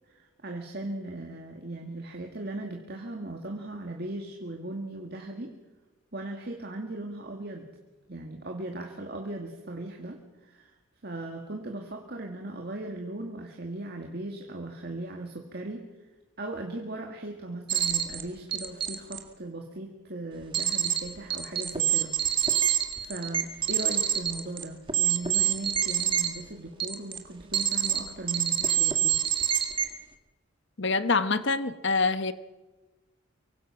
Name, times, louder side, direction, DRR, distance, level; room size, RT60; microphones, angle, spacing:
voice 1, 0.1-5.6 6.1-7.7 8.1-10.7 11.0-15.9 16.4-29.2, right 2 dB, 45° right, 2 dB, 2.0 m, -38 dB
sound 1, 17.7-18.2 18.5-19.2 20.5-21.0 21.3-26.3 26.8-27.2 27.5-28.0 28.3-29.8, right 10 dB, 25° right, 1.8 m, -26 dB
voice 2, 30.8-32.3, left 4 dB, 55° left, 12 dB, 1.1 m, -25 dB
24.5 x 24.0 x 5.9 m, 1.2 s
head